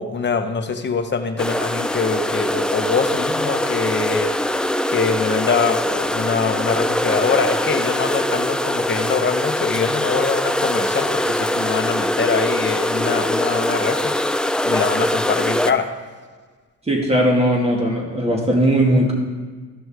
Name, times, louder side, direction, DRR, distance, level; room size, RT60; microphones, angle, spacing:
voice 1, 0.0-4.3 4.9-14.1 14.6-15.9, left 5 dB, 35° left, 7 dB, 0.9 m, -23 dB
sound 1, 1.4-15.7, left 1 dB, 5° left, 0.3 m, -22 dB
voice 2, 16.9-19.1, right 1 dB, 20° right, -1 dB, 2.2 m, -18 dB
13.5 x 6.1 x 3.7 m, 1.4 s
cardioid pair, 90°, 30 cm